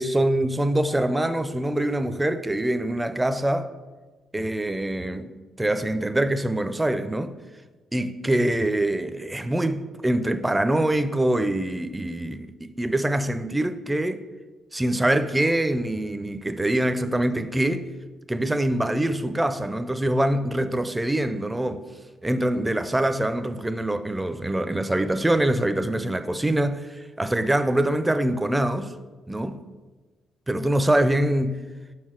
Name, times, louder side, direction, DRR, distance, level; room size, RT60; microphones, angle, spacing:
voice 1, 0.0-3.7 4.3-5.3 5.6-7.3 7.9-14.2 14.7-17.8 18.3-21.8 22.2-28.9 29.3-29.6 30.5-31.6, right 1 dB, 10° right, 0.4 m, -24 dB
5.3 x 4.8 x 4.4 m
cardioid pair, 90°, 0 cm